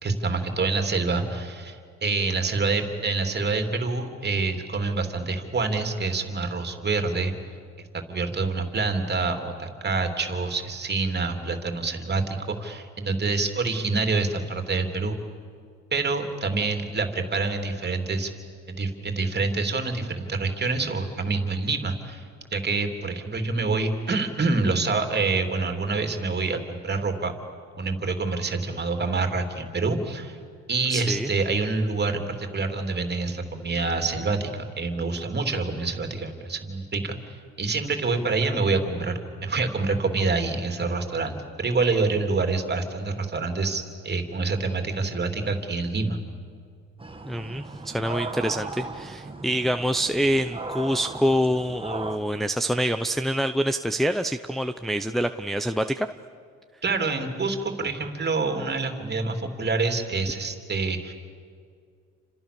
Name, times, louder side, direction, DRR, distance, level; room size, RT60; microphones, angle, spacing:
voice 1, 0.0-7.3 7.9-15.2 15.9-18.3 18.7-22.2 22.5-27.3 27.8-30.4 30.7-46.2 56.8-61.1, right 3 dB, 35° right, 5 dB, 3.3 m, -27 dB
voice 2, 30.9-31.3 47.2-56.1, equal, ahead, 7 dB, 0.8 m, -26 dB
sound 1, 47.0-52.2, right 3 dB, 20° right, 2.0 m, -37 dB
30.0 x 26.5 x 7.0 m, 2.2 s
cardioid pair, 90°, 30 cm